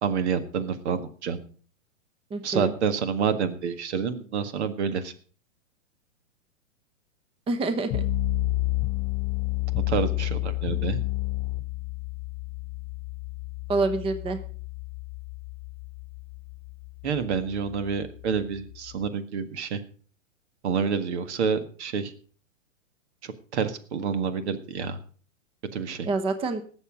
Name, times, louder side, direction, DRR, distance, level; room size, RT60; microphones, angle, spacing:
voice 1, 0.0-1.4 2.4-5.1 9.7-11.0 17.0-19.8 20.6-22.1 23.2-25.0 25.7-26.1, right 6 dB, 60° right, 11 dB, 1.8 m, -28 dB
voice 2, 2.3-2.7 7.5-8.0 13.7-14.4 26.0-26.6, right 3 dB, 15° right, 10 dB, 1.0 m, -27 dB
sound 1, 7.9-19.1, left 17 dB, 35° left, 1.2 m, -30 dB
18.5 x 7.1 x 5.1 m, 0.42 s
hypercardioid pair, 125°, 39 cm